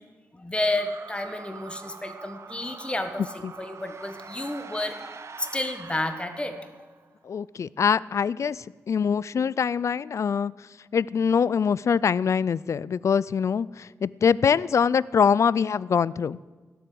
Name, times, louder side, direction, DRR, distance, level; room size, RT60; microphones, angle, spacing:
voice 1, 0.3-6.7, left 1 dB, 20° left, 8 dB, 1.3 m, -31 dB
sound 1, 0.7-7.1, right 5 dB, 55° right, 0.8 m, -44 dB
voice 2, 7.2-16.4, left 6 dB, 60° left, 21 dB, 0.4 m, -24 dB
17.5 x 8.0 x 7.7 m, 1.4 s
cardioid pair, 80°, 6 cm